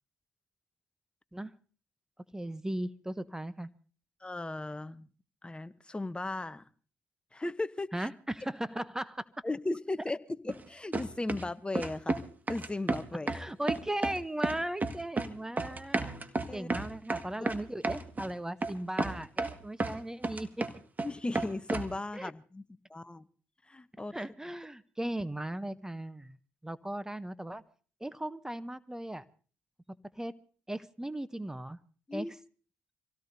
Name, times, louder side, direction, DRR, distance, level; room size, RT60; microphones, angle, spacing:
voice 1, 2.3-3.7 7.9-9.2 13.3-16.1 16.5-20.6 22.1-22.3 24.1-26.4 26.6-27.6 28.0-29.2 30.2-30.3 30.7-31.8 32.1-32.4, right 1 dB, 10° right, 0.8 m, -37 dB
voice 2, 4.2-5.1 5.4-6.6 7.3-8.1 9.4-12.2 12.5-13.3 16.5-16.7 21.0-22.6 22.9-23.3 23.7-24.1 32.1-32.3, left 2 dB, 20° left, 0.9 m, -36 dB
sound 1, 10.5-10.6 10.9-11.5 11.8-12.2 12.5-13.4 13.7-14.2 14.4-15.3 15.6-18.3 18.6-18.7 19.0-19.9 20.2-21.1 21.3-21.9, right 3 dB, 35° right, 1.7 m, -32 dB
26.0 x 17.0 x 2.7 m
supercardioid pair, 55°, 5 cm